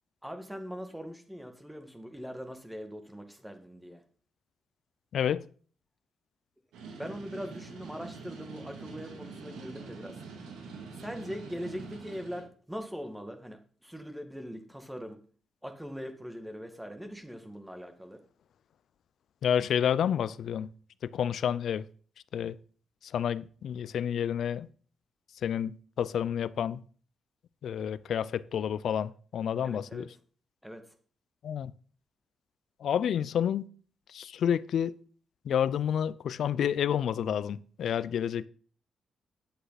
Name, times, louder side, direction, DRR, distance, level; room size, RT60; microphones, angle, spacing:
voice 1, 0.2-4.0 7.0-10.2 11.0-15.2 15.6-18.2 29.6-30.1 30.6-30.8, equal, 5° right, 2.1 m, -41 dB
voice 2, 5.1-5.5 19.4-20.7 21.0-21.9 22.3-22.6 23.0-24.7 25.4-26.8 27.6-30.1 31.4-31.7 32.8-33.7 34.1-35.0 35.4-38.5, left 9 dB, 75° left, 0.5 m, -29 dB
sound 1, 6.7-12.4, right 4 dB, 90° right, 2.3 m, -45 dB
10.5 x 7.9 x 4.1 m
supercardioid pair, 60°, 0 cm